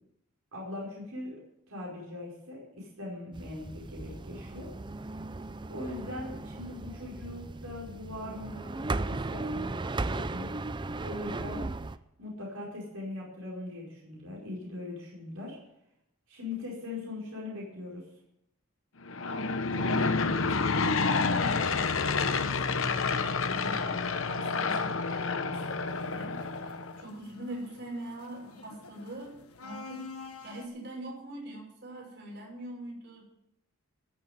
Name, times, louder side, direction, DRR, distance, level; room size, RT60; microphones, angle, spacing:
voice 1, 0.5-1.4 1.7-4.7 5.7-10.5 11.0-11.6 12.2-15.6 16.3-18.1, left 2 dB, 80° right, -5 dB, 5.2 m, -40 dB
sound 1, 3.3-12.0, right 2 dB, 20° right, 0.5 m, -36 dB
Aircraft / Engine, 19.0-27.0, left 4 dB, 60° left, 0.9 m, -29 dB
voice 2, 19.2-33.2, right 1 dB, 55° right, -2 dB, 6.1 m, -44 dB
sound 2, 25.6-30.7, left 4 dB, 90° left, 1.5 m, -48 dB
15.5 x 7.1 x 9.4 m, 0.79 s
head